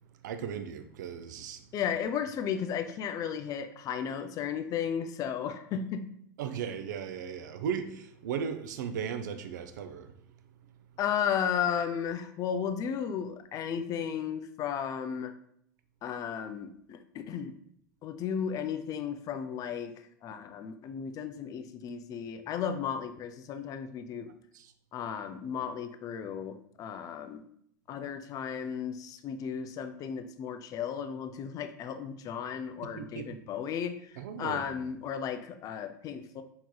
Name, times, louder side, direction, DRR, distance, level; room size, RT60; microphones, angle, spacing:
voice 1, 0.2-1.6 6.4-10.1 24.5-24.7 33.0-33.4 34.2-34.6, right 7 dB, 75° right, 0.4 m, -36 dB
voice 2, 1.7-6.0 11.0-15.3 16.0-17.5 18.0-19.9 20.2-24.3 24.9-27.4 27.9-36.4, left 8 dB, 35° left, 0.4 m, -34 dB
4.6 x 2.8 x 2.2 m
hypercardioid pair, 90°, 10 cm